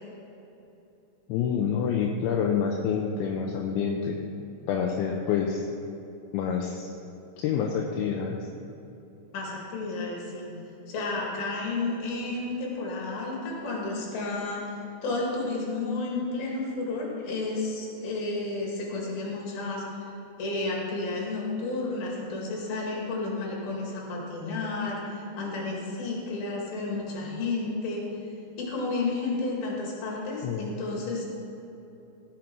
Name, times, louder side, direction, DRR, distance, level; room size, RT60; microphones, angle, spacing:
voice 1, 1.3-4.2 4.7-5.7 6.3-6.9 7.4-8.4 30.4-30.7, left 7 dB, 80° left, 0 dB, 2.9 m, -27 dB
voice 2, 9.3-10.5 10.9-20.1 20.4-28.1 28.6-31.3, left 3 dB, 55° left, -2 dB, 3.6 m, -31 dB
16.5 x 7.3 x 4.6 m, 3.0 s
omnidirectional pair, 5.6 m